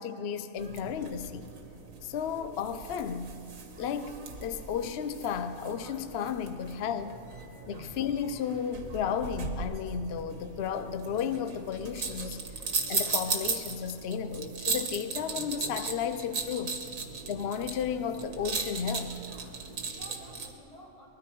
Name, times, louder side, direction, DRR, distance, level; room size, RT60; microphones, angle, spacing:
voice 1, 0.0-1.5 2.0-3.3 3.8-7.2 7.7-12.4 12.9-16.8 17.3-19.2, left 7 dB, 60° left, 0.7 m, -33 dB
sound 1, 0.6-20.5, right 4 dB, 70° right, 1.6 m, -37 dB
voice 2, 19.4-21.1, equal, 90° left, 4.1 m, -53 dB
21.0 x 13.5 x 4.6 m
omnidirectional pair, 1.5 m